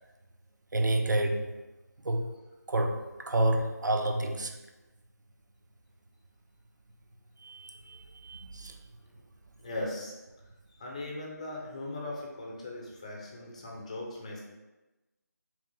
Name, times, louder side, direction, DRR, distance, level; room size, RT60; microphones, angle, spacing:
voice 1, 0.7-1.6 2.0-4.6 7.4-8.8, right 1 dB, 85° right, 5 dB, 0.5 m, -30 dB
voice 2, 9.6-10.1 10.8-14.4, left 2 dB, 20° left, -1 dB, 0.4 m, -39 dB
3.5 x 3.0 x 2.6 m, 1.1 s
figure-of-eight pair, 165°, 10 cm